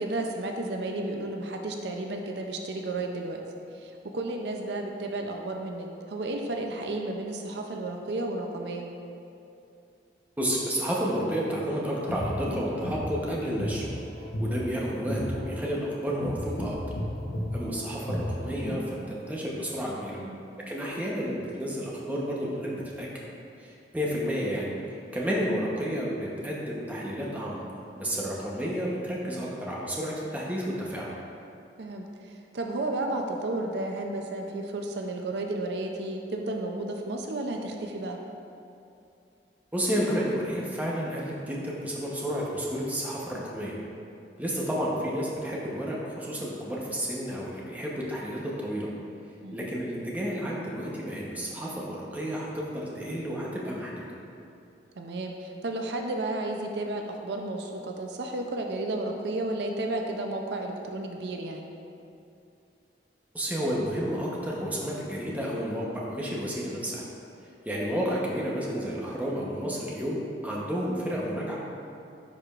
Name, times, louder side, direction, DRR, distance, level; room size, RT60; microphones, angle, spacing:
voice 1, 0.0-3.4 3.7-8.8 20.1-20.5 31.8-38.2 49.4-49.7 55.0-61.7, right 2 dB, 70° right, 2 dB, 0.5 m, -32 dB
voice 2, 10.4-13.8 14.4-16.8 17.5-20.2 20.7-23.1 23.6-27.6 28.0-31.1 39.7-43.8 44.4-48.9 49.5-54.1 63.3-67.0 67.6-71.6, equal, 10° right, -4 dB, 0.9 m, -31 dB
sound 1, 11.9-18.9, equal, 85° left, 0.9 m, -33 dB
10.0 x 5.0 x 2.4 m, 2.6 s
head